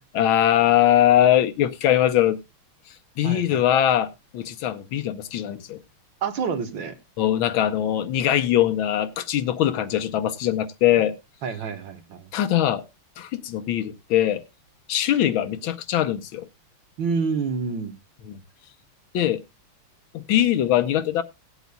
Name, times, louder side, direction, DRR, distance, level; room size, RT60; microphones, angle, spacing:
voice 1, 0.1-2.4 3.2-5.8 7.2-11.1 12.3-12.8 13.2-14.4 14.9-16.5 18.3-18.4 19.1-19.4 20.1-21.2, left 11 dB, 75° left, 1.5 m, -21 dB
voice 2, 3.2-3.6 6.2-6.9 11.4-12.3 17.0-18.0, right 5 dB, 65° right, 1.8 m, -28 dB
18.5 x 8.1 x 2.2 m
omnidirectional pair, 2.4 m